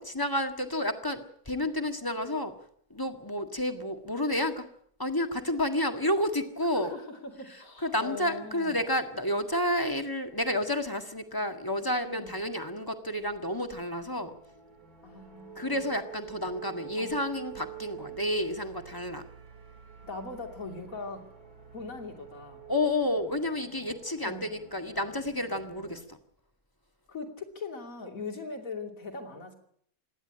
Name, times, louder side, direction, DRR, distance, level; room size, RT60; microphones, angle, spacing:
voice 1, 0.0-2.5 2.9-4.6 5.0-6.9 7.8-14.3 15.6-19.2 22.7-26.2, left 1 dB, 15° left, 6 dB, 1.7 m, -30 dB
voice 2, 6.7-8.8 12.0-12.4 15.0-15.8 17.0-17.2 20.0-21.3 21.7-22.6 24.2-24.5 27.1-29.6, left 3 dB, 60° left, 4 dB, 3.2 m, -40 dB
sound 1, 13.2-26.0, right 10 dB, 70° right, 2.7 m, -48 dB
26.5 x 11.0 x 10.0 m, 0.66 s
omnidirectional pair, 1.6 m